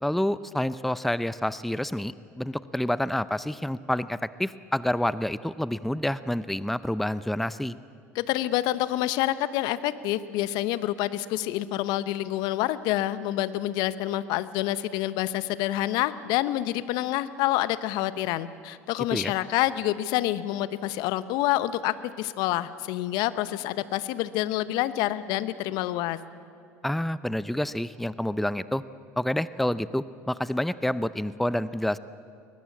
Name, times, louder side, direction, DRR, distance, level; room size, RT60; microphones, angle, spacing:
voice 1, 0.0-7.8 19.1-19.3 26.8-28.8 29.2-32.0, left 1 dB, ahead, 16 dB, 0.6 m, -28 dB
voice 2, 8.1-26.2, left 14 dB, 60° left, 15 dB, 0.9 m, -27 dB
21.0 x 20.0 x 8.6 m, 2.5 s
hypercardioid pair, 75°, 8 cm